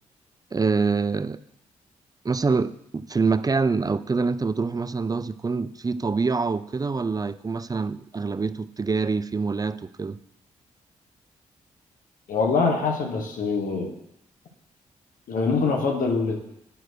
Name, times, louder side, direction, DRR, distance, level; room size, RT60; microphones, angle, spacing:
voice 1, 0.5-1.4 2.2-10.2, right 4 dB, 25° right, 15 dB, 0.5 m, -25 dB
voice 2, 12.3-13.9 15.3-16.5, left 4 dB, 70° left, 2 dB, 1.4 m, -24 dB
9.9 x 4.5 x 6.3 m, 0.79 s
supercardioid pair, 50°, 14 cm